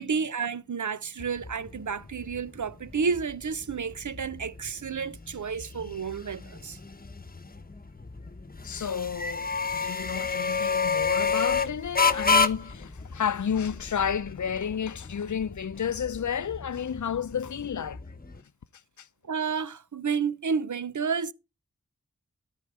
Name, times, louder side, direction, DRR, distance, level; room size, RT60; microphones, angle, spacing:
voice 1, 0.0-6.8 19.3-21.3, right 6 dB, 85° right, 0.7 m, -31 dB
sound 1, 1.2-18.4, left 5 dB, 30° left, 1.0 m, -30 dB
voice 2, 8.6-18.0 19.0-19.1, left 7 dB, 80° left, 0.5 m, -31 dB
13.5 x 4.6 x 6.5 m
wide cardioid pair, 40°, 29 cm